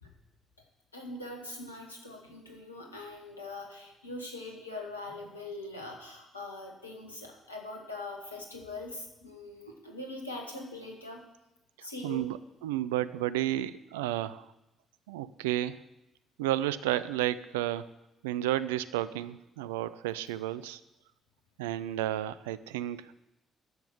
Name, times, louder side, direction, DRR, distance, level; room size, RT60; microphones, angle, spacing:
voice 1, 0.9-11.2 11.8-12.3, left 2 dB, 90° left, 1 dB, 1.5 m, -42 dB
voice 2, 11.8-14.5 15.1-15.8 16.4-17.9 18.2-20.8 21.6-23.2, right 13 dB, 75° right, 15 dB, 0.4 m, -32 dB
11.0 x 6.9 x 7.3 m, 0.93 s
figure-of-eight pair, 45°, 0 cm